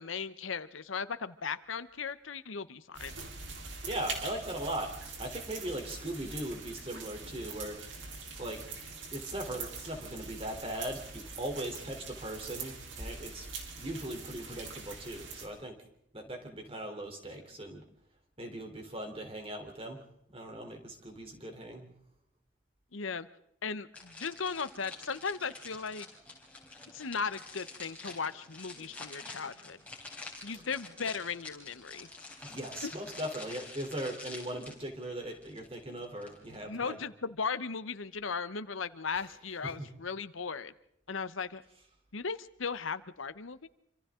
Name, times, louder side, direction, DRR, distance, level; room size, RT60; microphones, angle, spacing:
voice 1, 0.0-3.1 22.9-23.3 23.6-26.1 26.9-29.8 30.4-32.1 32.8-32.9 36.6-40.7 41.1-41.6 42.1-43.7, left 5 dB, 85° left, 14 dB, 0.9 m, -37 dB
sound 1, 2.9-15.5, right 4 dB, 75° right, 3.8 m, -43 dB
voice 2, 3.9-4.9 5.2-8.1 8.4-8.7 9.1-13.5 13.8-15.8 16.1-17.8 18.4-20.0 20.3-21.9 32.4-37.0 39.1-39.2 39.6-39.9, right 1 dB, 30° right, 3 dB, 3.5 m, -39 dB
sound 2, 23.9-36.6, left 3 dB, 5° left, 4.0 m, -48 dB
27.0 x 26.0 x 3.8 m, 0.74 s
head